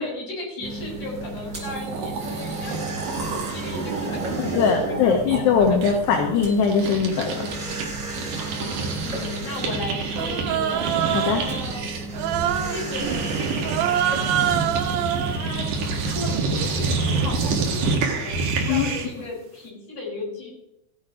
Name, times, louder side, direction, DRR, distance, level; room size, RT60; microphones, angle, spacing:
voice 1, 0.0-5.6 8.3-10.8 11.4-11.9 12.7-14.8 15.2-20.5, left 2 dB, 45° left, -2 dB, 5.8 m, -36 dB
sound 1, 0.6-16.2, right 2 dB, 25° right, 4.1 m, -34 dB
sound 2, 1.4-1.5 1.6-7.8 8.1-19.2, right 4 dB, 55° right, 2.8 m, -28 dB
voice 2, 4.4-7.5 11.1-11.4 18.7-18.9, left 6 dB, 75° left, 0 dB, 3.4 m, -21 dB
Human voice, 10.2-11.5 12.1-12.8 13.6-15.4, right 11 dB, 80° right, 2.1 m, -25 dB
14.5 x 9.1 x 5.0 m, 0.84 s
omnidirectional pair, 5.0 m